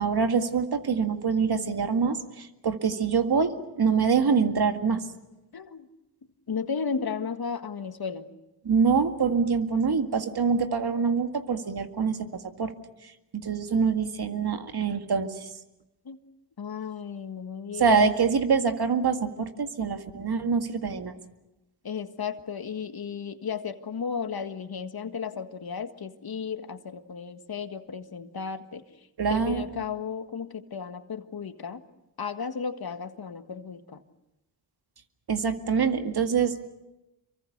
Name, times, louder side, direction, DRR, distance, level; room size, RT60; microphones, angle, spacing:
voice 1, 0.0-5.0 8.6-12.7 13.3-15.5 17.8-21.1 29.2-29.8 35.3-36.7, right 5 dB, 65° right, 7 dB, 2.1 m, -25 dB
voice 2, 5.5-5.9 6.5-8.3 16.0-16.2 16.6-18.1 21.8-28.8 29.3-31.8 32.2-34.0, left 6 dB, 60° left, 9 dB, 1.7 m, -34 dB
26.5 x 24.0 x 6.7 m, 0.95 s
cardioid pair, 40°, 42 cm